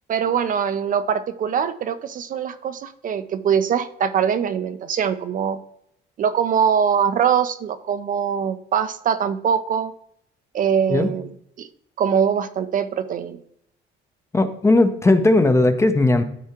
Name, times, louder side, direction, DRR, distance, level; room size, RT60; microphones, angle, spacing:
voice 1, 0.1-5.6 6.2-9.9 10.5-11.3 11.6-11.7 12.0-13.4, right 7 dB, 40° right, 11 dB, 0.4 m, -22 dB
voice 2, 14.3-16.2, left 2 dB, 15° left, 9 dB, 0.5 m, -17 dB
12.5 x 4.6 x 2.9 m, 0.72 s
cardioid pair, 145°, 21 cm